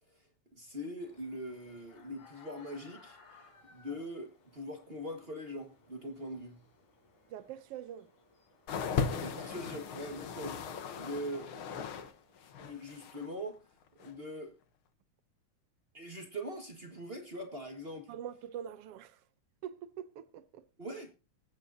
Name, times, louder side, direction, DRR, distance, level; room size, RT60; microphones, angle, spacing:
voice 1, 0.5-6.6 9.0-12.0 12.6-13.6 14.0-14.6 15.9-18.1 20.8-21.1, equal, 30° right, 1.1 m, -42 dB
sound 1, 1.0-12.8, left 4 dB, 90° left, 5.3 m, -63 dB
voice 2, 7.3-8.1 18.1-19.2 19.6-20.6, right 10 dB, 70° right, 1.4 m, -44 dB
sound 2, 8.7-12.1 12.4-13.3 14.0-14.1, left 6 dB, 60° left, 1.6 m, -37 dB
20.5 x 9.1 x 2.7 m
omnidirectional pair, 3.4 m